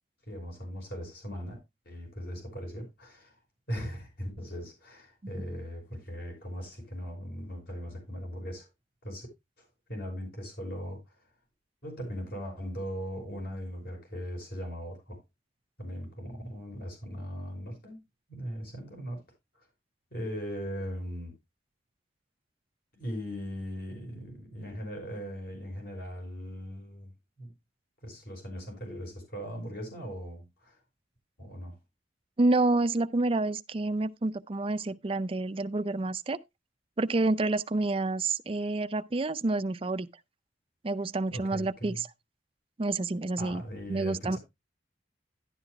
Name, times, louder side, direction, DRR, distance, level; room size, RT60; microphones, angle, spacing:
voice 1, 0.3-1.6 1.9-3.4 3.7-8.7 9.0-9.3 9.6-11.2 11.8-15.2 15.8-18.0 18.3-19.2 19.5-19.6 20.1-21.3 22.9-27.1 27.4-27.5 28.0-30.8 31.4-31.8 41.3-42.0 43.4-44.4, equal, 60° left, 5.6 m, -39 dB
voice 2, 32.4-36.4 37.0-40.1 40.8-42.1 42.8-43.6 43.9-44.4, right 2 dB, 30° right, 0.5 m, -28 dB
11.5 x 11.0 x 2.2 m
head